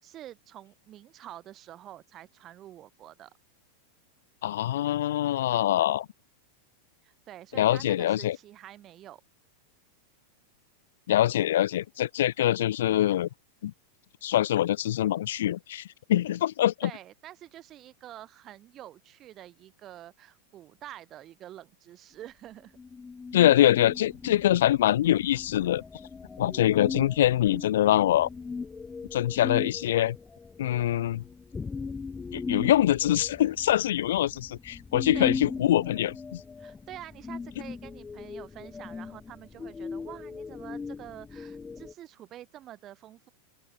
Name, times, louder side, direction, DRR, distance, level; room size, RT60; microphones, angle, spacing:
voice 1, 0.0-3.3 7.0-9.2 16.8-22.8 35.1-35.3 36.6-43.3, right 12 dB, 30° right, 4.5 m, -47 dB
voice 2, 4.4-6.1 7.6-8.4 11.1-13.3 13.6-13.7 14.2-16.7 23.3-25.8 26.4-28.3 29.1-30.2 30.6-31.2 32.3-36.4, left 12 dB, 60° left, 0.7 m, -24 dB
sound 1, 22.8-41.9, left 5 dB, 15° left, 1.3 m, -39 dB
open air
figure-of-eight pair, 90°, 0 cm